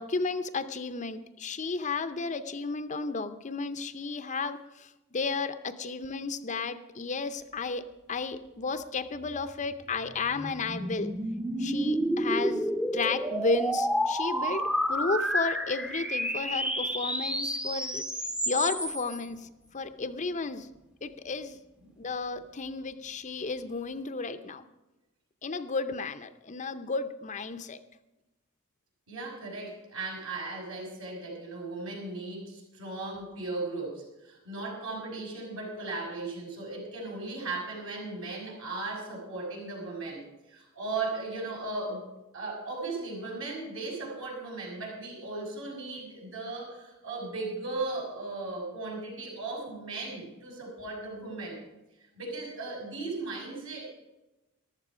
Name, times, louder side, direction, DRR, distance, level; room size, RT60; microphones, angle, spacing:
voice 1, 0.0-11.1 11.6-12.7 12.9-18.1 18.5-20.7 21.0-21.6 22.0-24.7 25.4-27.8, left 4 dB, 35° left, 10 dB, 0.6 m, -33 dB
sound 1, 9.5-19.2, equal, 5° right, 0.7 m, -30 dB
voice 2, 29.1-40.2 40.5-51.6 52.1-53.8, right 3 dB, 70° right, -2 dB, 5.9 m, -37 dB
14.5 x 12.5 x 5.0 m, 1.0 s
head